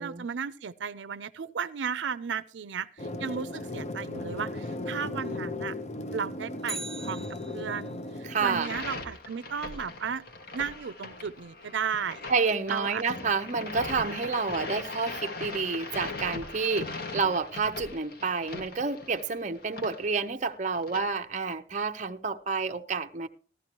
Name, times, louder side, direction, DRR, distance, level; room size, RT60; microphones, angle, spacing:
voice 1, 0.0-5.7 6.1-7.3 7.5-10.2 10.5-12.2 12.7-13.0, right 6 dB, 80° right, 0.5 m, -34 dB
sound 1, 3.0-8.6, left 1 dB, 35° left, 0.8 m, -36 dB
Bicycle, 6.6-8.0 16.3-16.4, right 2 dB, 5° left, 0.9 m, -40 dB
voice 2, 8.2-8.7 12.3-23.3, right 4 dB, 40° right, 0.7 m, -29 dB
sound 2, 8.4-21.0, left 3 dB, 55° left, 1.7 m, -40 dB
15.0 x 13.0 x 3.0 m
head